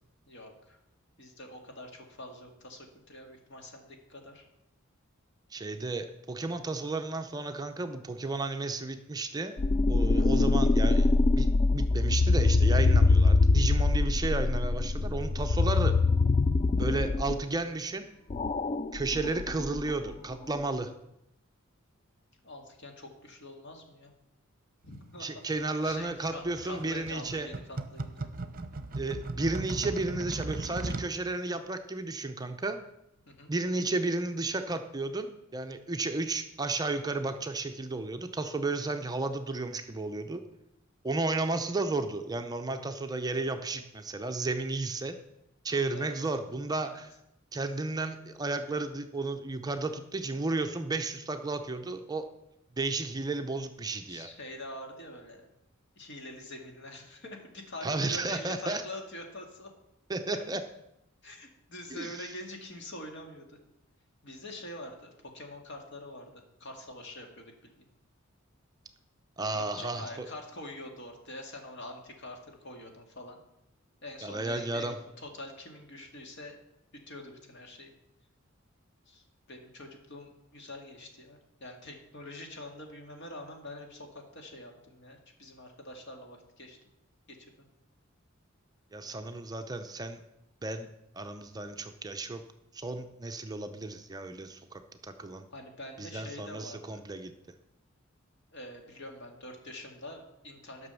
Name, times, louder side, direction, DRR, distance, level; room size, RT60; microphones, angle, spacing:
voice 1, 0.3-0.8 1.2-4.5 10.1-10.4 19.3-19.4 22.4-24.1 24.8-25.3 25.8-28.3 33.3-33.5 45.9-46.4 46.8-47.0 54.1-55.5 56.0-59.7 60.3-60.4 61.2-63.6 64.2-67.9 69.5-73.4 74.0-76.6 76.9-77.9 79.1-86.8 87.3-87.4 89.0-89.1 95.5-97.0 98.5-100.9, left 1 dB, 60° left, 3 dB, 2.0 m, -45 dB
voice 2, 5.5-9.6 9.9-11.5 11.7-16.0 16.8-18.0 18.9-20.9 25.2-27.5 29.0-32.8 33.5-40.4 41.0-45.2 45.6-47.1 47.5-52.3 52.8-54.3 57.8-58.8 60.1-60.6 61.9-62.3 69.4-70.3 74.2-75.0 88.9-90.2 90.6-90.9 91.2-92.4 92.7-95.5 96.0-97.3, right 3 dB, 20° right, 7 dB, 0.6 m, -33 dB
sound 1, 9.6-17.4 18.3-20.1, left 3 dB, 30° left, 0.3 m, -24 dB
sound 2, 25.5-31.1, right 2 dB, 45° right, 0.8 m, -38 dB
11.0 x 6.0 x 6.9 m, 0.86 s
head